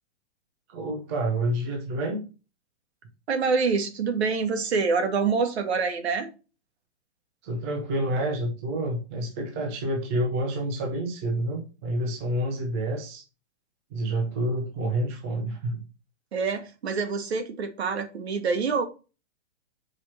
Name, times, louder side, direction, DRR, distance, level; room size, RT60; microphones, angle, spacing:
voice 1, 0.7-2.2 7.4-13.2 13.9-15.8, right 1 dB, 15° right, 0.5 m, -28 dB
voice 2, 3.3-6.3 16.3-18.8, right 5 dB, 65° right, 1.5 m, -26 dB
4.9 x 4.3 x 5.4 m
hypercardioid pair, 165°, 35 cm